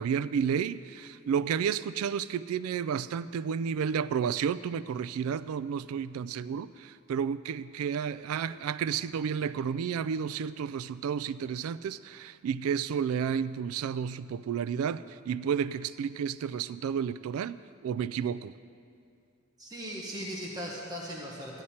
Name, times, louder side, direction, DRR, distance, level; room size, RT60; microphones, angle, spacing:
voice 1, 0.0-17.6 17.8-18.5, right 7 dB, 85° right, 15 dB, 0.3 m, -31 dB
voice 2, 19.6-21.6, equal, 20° right, -3 dB, 1.3 m, -38 dB
15.0 x 11.0 x 4.3 m, 2.4 s
head